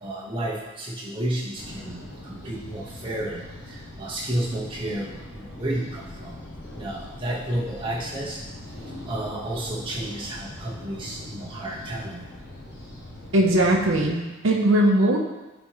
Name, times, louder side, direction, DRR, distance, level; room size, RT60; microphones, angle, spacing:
voice 1, 0.0-6.3 6.8-8.4 9.1-12.3, right 1 dB, 25° right, -4 dB, 1.3 m, -31 dB
sound 1, 1.5-14.1, left 1 dB, 50° left, 1.7 m, -41 dB
voice 2, 13.3-15.2, right 1 dB, 60° right, 0 dB, 0.8 m, -20 dB
11.0 x 4.4 x 3.1 m, 1.1 s
head